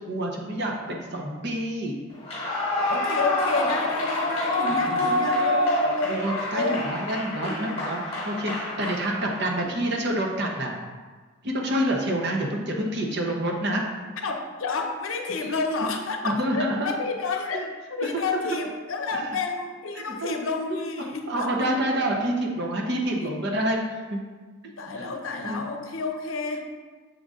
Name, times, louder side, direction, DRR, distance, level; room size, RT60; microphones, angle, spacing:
voice 1, 0.0-1.9 4.7-5.0 6.1-10.7 11.4-13.8 15.4-15.6 16.2-16.9 17.5-17.7 18.0-18.1 18.5-18.6 19.1-19.3 19.9-20.4 20.7-20.8 21.3-23.8 24.1-24.2 25.0-25.1 25.4-25.7, right 1 dB, 50° right, 0 dB, 0.8 m, -28 dB
Clapping / Cheering / Applause, 2.2-9.6, left 1 dB, 30° left, 1.3 m, -27 dB
voice 2, 2.9-6.2 6.5-7.0 7.4-7.6 9.6-9.7 14.2-17.6 17.9-21.7 23.2-23.3 24.8-26.8, left 4 dB, 70° left, 4 dB, 0.6 m, -30 dB
6.7 x 3.8 x 3.7 m, 1.4 s
head